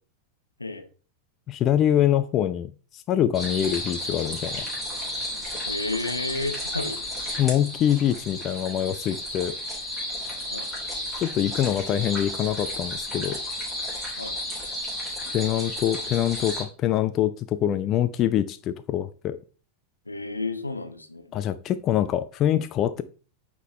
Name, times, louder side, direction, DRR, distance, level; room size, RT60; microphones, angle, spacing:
voice 1, 1.5-4.7 7.4-9.5 11.2-13.4 15.3-19.4 21.3-23.0, left 11 dB, 35° left, 12 dB, 0.3 m, -24 dB
sound 1, 3.3-16.6, left 1 dB, ahead, 3.1 m, -33 dB
voice 2, 5.7-7.0 10.5-10.7 14.2-14.4 20.1-21.3, left 3 dB, 80° left, 7 dB, 0.8 m, -31 dB
8.9 x 3.7 x 3.1 m, 0.38 s
figure-of-eight pair, 90°, 0 cm